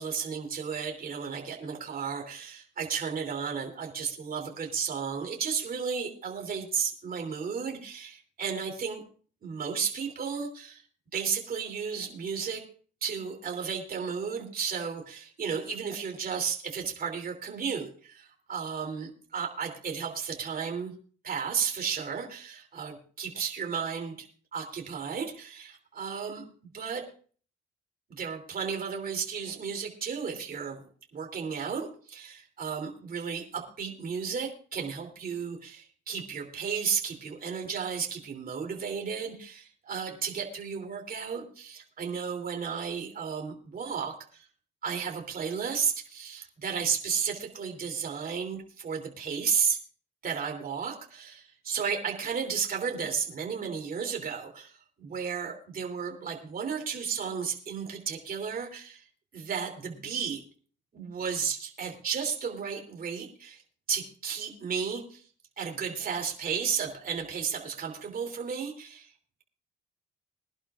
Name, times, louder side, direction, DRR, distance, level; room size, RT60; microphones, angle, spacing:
voice 1, 0.0-9.0 9.4-10.8 11.1-12.6 13.0-20.9 21.2-24.2 24.5-26.5 26.7-27.1 28.1-30.8 31.1-44.4 44.8-49.8 50.2-54.7 55.0-59.0 59.3-60.4 60.9-63.6 63.9-65.2 65.6-69.1, right 6 dB, 45° right, 3 dB, 3.1 m, -33 dB
22.5 x 11.5 x 2.5 m, 0.43 s
cardioid pair, 90°, 20 cm